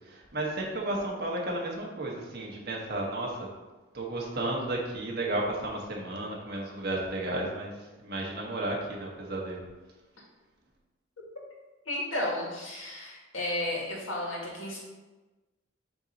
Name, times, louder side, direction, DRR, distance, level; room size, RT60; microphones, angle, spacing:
voice 1, 0.1-3.5 3.9-7.7 8.0-9.6, right 1 dB, 50° right, -2 dB, 1.4 m, -33 dB
voice 2, 11.9-14.8, left 1 dB, 90° left, -3 dB, 2.0 m, -33 dB
7.0 x 2.9 x 5.4 m, 1.2 s
head